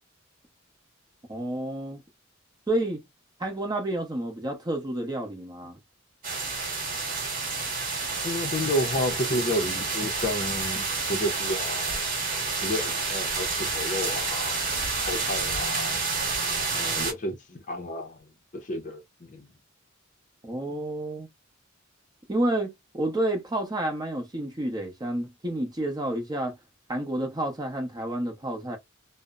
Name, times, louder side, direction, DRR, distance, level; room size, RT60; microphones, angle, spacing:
voice 1, 1.3-2.0 2.7-3.0 3.4-5.8 20.4-21.3 22.3-26.5 26.9-28.8, right 1 dB, 20° right, 0.7 m, -30 dB
sound 1, 6.2-17.1, right 4 dB, 45° right, 1.2 m, -29 dB
voice 2, 8.2-12.0 12.5-14.6 15.1-16.0 16.7-18.2 18.5-19.5, left 1 dB, 40° left, 0.6 m, -31 dB
2.7 x 2.0 x 2.3 m
head